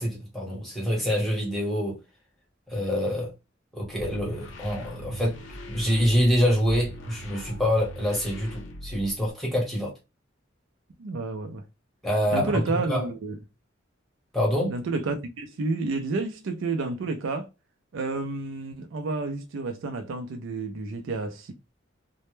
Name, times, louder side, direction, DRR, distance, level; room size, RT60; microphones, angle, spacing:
voice 1, 0.0-2.0 2.7-3.3 3.7-5.4 5.7-9.9 12.0-12.6 12.9-13.1 14.3-14.7, equal, ahead, 1.0 m, -26 dB
sound 1, 4.0-9.3, equal, 70° left, 0.6 m, -40 dB
voice 2, 11.0-11.6 12.3-13.4 14.7-17.5 17.9-21.5, right 3 dB, 75° right, 0.4 m, -30 dB
2.1 x 2.0 x 3.0 m
head